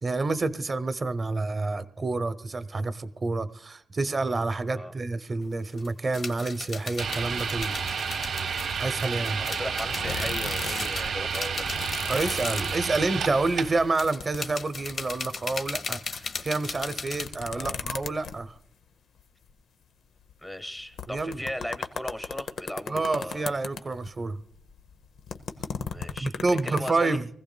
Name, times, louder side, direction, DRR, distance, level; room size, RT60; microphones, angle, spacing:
voice 1, 0.0-7.8 8.8-9.4 12.1-18.5 21.1-21.4 22.9-24.4 26.2-27.3, right 3 dB, 35° right, 12 dB, 0.8 m, -28 dB
sound 1, 5.4-5.5 5.7-17.3, left 4 dB, 55° left, 1.0 m, -38 dB
sound 2, 7.0-13.9, right 6 dB, 70° right, 0.8 m, -31 dB
voice 2, 9.4-11.6 17.5-17.8 20.4-23.4 25.9-26.3 26.6-27.2, left 1 dB, 5° left, 8 dB, 1.0 m, -37 dB
sound 3, 9.8-11.1 11.4-13.3 13.6-18.6 19.2-19.3 19.5-19.6 20.3-20.4 20.8-24.2 24.5-26.9, left 6 dB, 80° left, 0.7 m, -36 dB
23.5 x 15.5 x 2.2 m, 0.71 s
cardioid pair, 105°, 0 cm